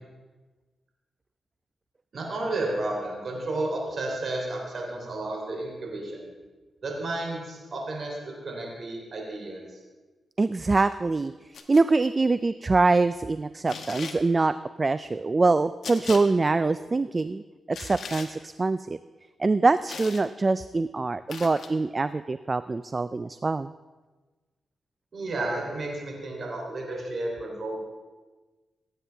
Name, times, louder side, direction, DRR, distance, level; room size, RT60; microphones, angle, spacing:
voice 1, 2.1-6.3 6.8-8.2 8.4-9.8 25.1-27.8, right 2 dB, 60° right, -1 dB, 3.3 m, -32 dB
voice 2, 10.4-11.3 11.7-17.4 17.7-19.0 19.4-23.7, right 3 dB, 35° right, 13 dB, 0.3 m, -24 dB
sound 1, 11.5-11.8 13.7-14.2 15.8-16.2 17.7-18.3 19.9-20.2 21.3-21.7, left 5 dB, 70° left, 1.2 m, -38 dB
17.0 x 9.1 x 3.4 m, 1.3 s
cardioid pair, 70°, 0 cm